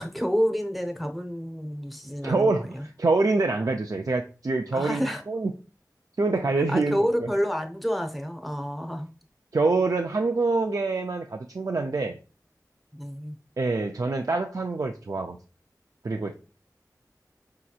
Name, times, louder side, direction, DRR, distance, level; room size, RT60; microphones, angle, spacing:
voice 1, 0.0-2.9 4.7-5.2 6.5-9.1 12.9-13.4, equal, ahead, 4 dB, 0.7 m, -29 dB
voice 2, 2.2-2.7 3.0-5.5 6.2-7.0 9.5-12.2 13.6-15.4 16.0-16.3, right 3 dB, 55° right, 3 dB, 0.4 m, -25 dB
5.0 x 2.9 x 2.3 m, 0.34 s
wide cardioid pair, 40°, 7 cm